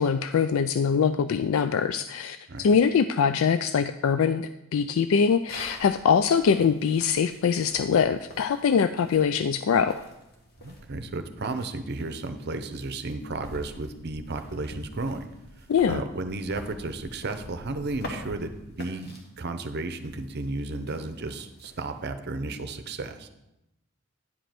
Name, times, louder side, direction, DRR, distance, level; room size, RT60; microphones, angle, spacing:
voice 1, 0.0-10.0 15.7-16.0, left 6 dB, 65° left, 11 dB, 0.3 m, -23 dB
sound 1, 5.5-22.0, left 1 dB, 50° left, 1.5 m, -46 dB
voice 2, 10.6-15.3 15.9-23.3, right 2 dB, 50° right, 9 dB, 0.7 m, -33 dB
9.8 x 5.2 x 5.9 m, 0.91 s
head